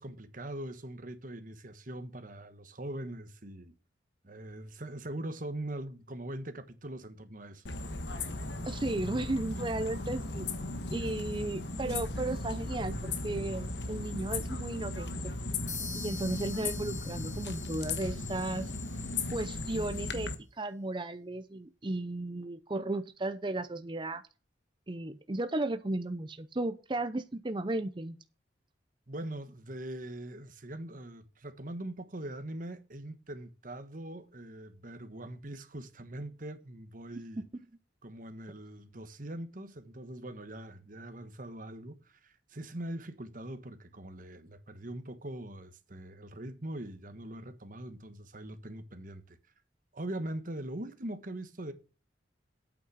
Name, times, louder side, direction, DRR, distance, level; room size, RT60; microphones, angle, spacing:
voice 1, 0.0-3.8 4.2-7.6 29.1-37.4 38.0-49.4 49.9-51.7, right 1 dB, 45° right, 1.3 m, -42 dB
sound 1, 7.7-20.3, left 2 dB, 70° left, 1.4 m, -36 dB
voice 2, 8.7-10.5 10.9-15.3 16.0-18.7 19.3-20.3 20.6-24.2 24.9-28.2, right 2 dB, 25° right, 0.6 m, -35 dB
sound 2, 15.7-19.4, left 4 dB, 45° left, 4.9 m, -45 dB
8.8 x 6.3 x 6.4 m
head